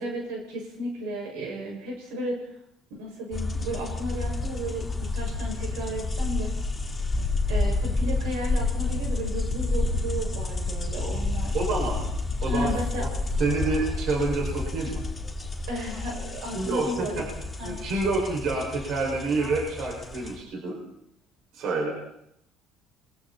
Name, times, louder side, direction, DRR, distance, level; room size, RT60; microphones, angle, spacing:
voice 1, 0.0-2.4 3.0-6.5 7.5-11.6 12.5-13.0 15.7-17.3 17.6-17.8, equal, 85° right, 0 dB, 6.8 m, -33 dB
sound 1, 3.3-20.4, left 2 dB, 15° left, 4.5 m, -30 dB
voice 2, 11.5-12.0 12.4-12.7 13.0-13.1 13.4-15.0 16.5-17.2 17.6-20.8 21.5-21.9, right 3 dB, 50° right, -1 dB, 6.6 m, -28 dB
30.0 x 23.5 x 4.5 m, 0.75 s
cardioid pair, 150°, 0 cm